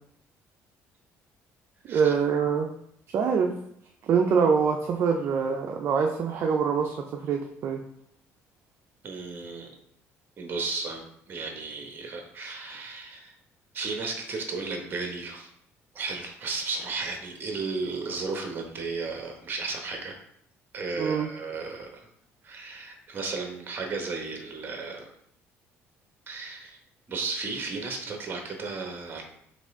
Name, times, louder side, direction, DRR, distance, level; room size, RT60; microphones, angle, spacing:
voice 1, 1.9-2.7 3.1-3.5 4.1-7.8 21.0-21.3, right 6 dB, 50° right, 2 dB, 0.4 m, -24 dB
voice 2, 9.0-9.7 10.4-13.3 13.7-15.5 15.9-20.1 20.7-22.1 22.4-25.1 26.3-26.8 27.1-29.2, right 4 dB, 35° right, 3 dB, 1.0 m, -34 dB
4.1 x 3.2 x 3.6 m, 0.70 s
cardioid pair, 115°, 6 cm